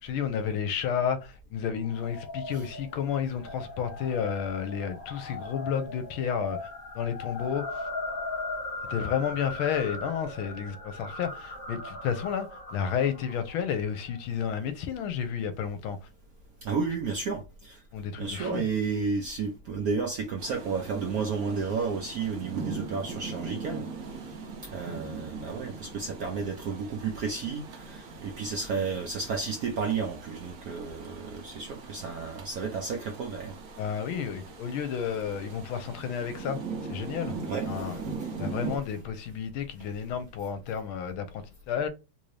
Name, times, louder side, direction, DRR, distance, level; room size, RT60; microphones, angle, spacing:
voice 1, 0.0-6.7 6.9-7.9 8.9-16.0 17.9-18.6 33.8-36.6 36.9-37.3 37.6-38.0 38.4-41.9, left 7 dB, 80° left, 1.4 m, -31 dB
sound 1, 1.8-14.2, left 2 dB, 45° left, 0.7 m, -39 dB
voice 2, 16.6-17.8 18.2-23.9 24.1-24.2 24.6-33.6 37.5-38.3, right 5 dB, 85° right, 0.8 m, -32 dB
Rain, 20.4-38.8, right 4 dB, 60° right, 0.9 m, -40 dB
3.6 x 2.6 x 3.1 m
omnidirectional pair, 2.3 m